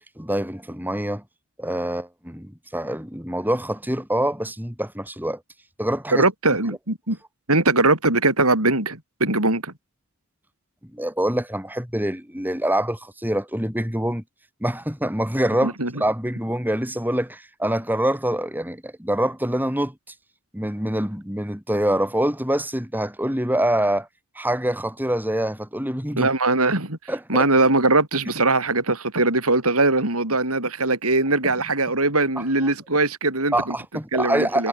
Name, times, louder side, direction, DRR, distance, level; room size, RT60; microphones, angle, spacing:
voice 1, 0.2-1.2 1.6-5.4 5.8-6.2 10.9-14.2 14.6-19.9 20.5-24.1 24.4-26.3 27.1-27.5 33.5-34.7, right 1 dB, 10° right, 7.3 m, -25 dB
voice 2, 6.1-7.2 7.5-9.7 15.6-15.9 26.2-27.0 27.3-33.8 34.1-34.7, right 2 dB, 80° right, 7.2 m, -21 dB
head